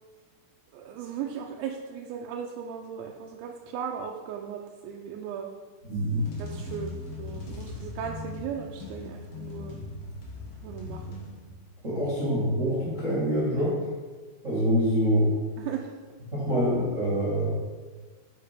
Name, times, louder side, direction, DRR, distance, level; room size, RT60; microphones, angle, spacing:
voice 1, 0.7-5.5 6.4-9.8 10.6-11.2 11.9-12.1 15.6-15.9, right 8 dB, 85° right, 0 dB, 2.9 m, -37 dB
sound 1, 5.8-11.8, left 3 dB, 80° left, 1.3 m, -40 dB
voice 2, 5.8-6.3 11.8-13.8 14.4-15.3 16.3-17.5, equal, 40° right, -8 dB, 1.0 m, -25 dB
8.6 x 5.5 x 5.1 m, 1.4 s
omnidirectional pair, 5.2 m